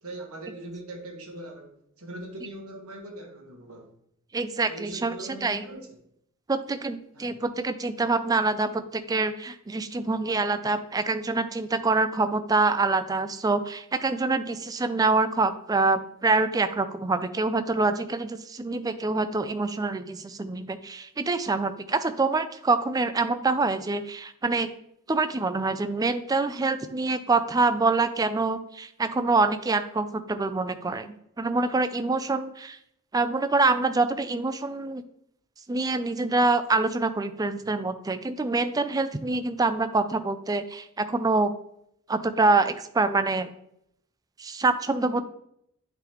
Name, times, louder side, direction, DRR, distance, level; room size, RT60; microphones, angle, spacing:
voice 1, 0.0-3.9 4.7-5.9 7.1-7.4 37.6-37.7, right 1 dB, 75° right, 2 dB, 1.4 m, -41 dB
voice 2, 4.3-5.1 5.4-5.6 6.5-24.7 25.1-32.8 33.1-35.0 35.7-41.5 42.1-43.5 44.4-45.2, right 3 dB, 15° right, 11 dB, 0.3 m, -25 dB
9.6 x 4.0 x 3.0 m, 0.74 s
head